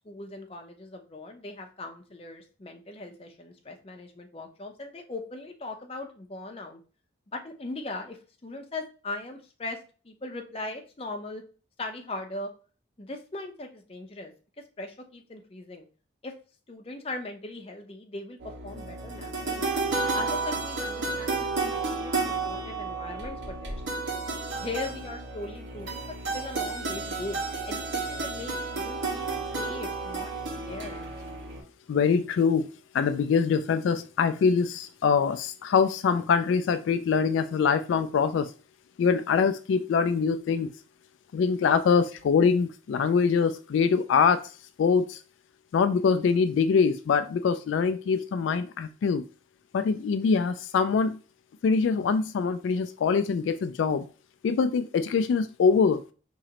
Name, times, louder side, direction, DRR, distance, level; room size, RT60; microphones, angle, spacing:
voice 1, 0.0-6.8 7.3-8.2 8.4-9.8 10.0-11.4 11.8-12.5 13.0-14.3 14.8-15.9 16.2-16.3 16.7-19.7 20.1-22.1 22.4-24.2 24.6-27.4 27.7-29.3 29.6-30.3 30.6-31.0, left 2 dB, 30° left, 4 dB, 0.6 m, -39 dB
sound 1, 18.4-31.6, right 3 dB, 90° right, 1.7 m, -32 dB
voice 2, 31.9-32.7 32.9-38.5 39.0-40.7 41.3-44.4 44.8-45.2 45.7-49.2 49.7-51.2 51.6-54.0 54.4-56.0, left 5 dB, 75° left, 11 dB, 0.3 m, -24 dB
4.9 x 3.0 x 2.9 m, 0.37 s
head